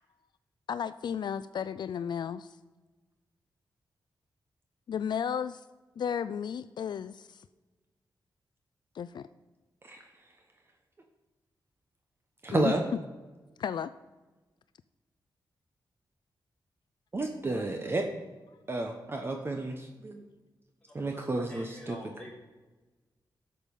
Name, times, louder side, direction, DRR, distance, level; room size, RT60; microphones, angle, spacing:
voice 1, 0.7-2.6 4.9-5.6 6.0-7.4 8.9-9.3 12.5-12.7 13.6-13.9, left 8 dB, 70° left, 13 dB, 0.3 m, -33 dB
voice 2, 12.4-12.8 17.1-18.1 18.7-20.2 20.9-22.0, right 2 dB, 30° right, 4 dB, 1.0 m, -31 dB
voice 3, 21.5-22.4, left 1 dB, 10° left, -5 dB, 4.0 m, -47 dB
12.5 x 6.8 x 5.4 m, 1.2 s
wide cardioid pair, 120°, 8 cm